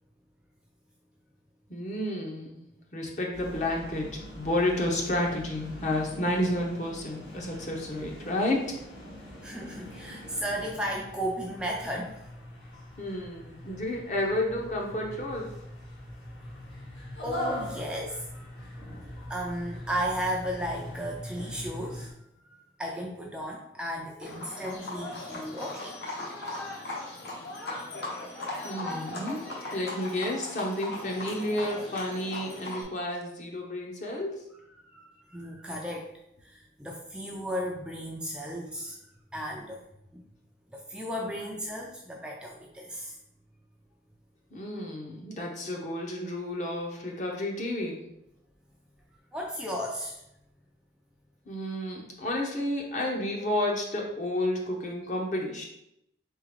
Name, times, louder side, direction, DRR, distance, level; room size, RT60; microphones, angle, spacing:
voice 1, 1.7-2.6 2.9-8.8 13.0-15.5 28.6-29.4 29.7-34.4 44.5-48.0 51.5-55.6, left 1 dB, 40° left, 0 dB, 0.8 m, -31 dB
sound 1, 3.3-22.1, left 1 dB, 85° left, 1.2 m, -42 dB
voice 2, 9.4-12.3 17.2-18.5 19.3-22.1 22.8-25.9 26.3-26.4 26.8-26.9 34.8-36.1 36.4-39.0 39.3-39.8 40.1-40.2 40.7-43.1 49.3-50.2, equal, 5° right, -2 dB, 0.4 m, -35 dB
Livestock farm animals working animals, 24.2-32.8, left 2 dB, 60° left, 1.1 m, -38 dB
4.1 x 3.7 x 3.1 m, 0.80 s
head